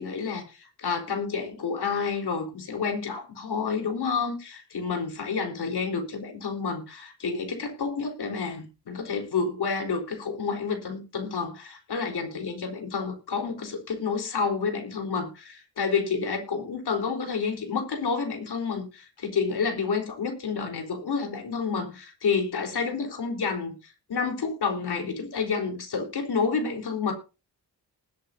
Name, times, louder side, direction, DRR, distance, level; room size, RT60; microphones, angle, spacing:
voice 1, 0.0-27.1, left 5 dB, 70° left, 4.0 m, -29 dB
20.0 x 8.3 x 2.7 m
wide cardioid pair, 180°, 40 cm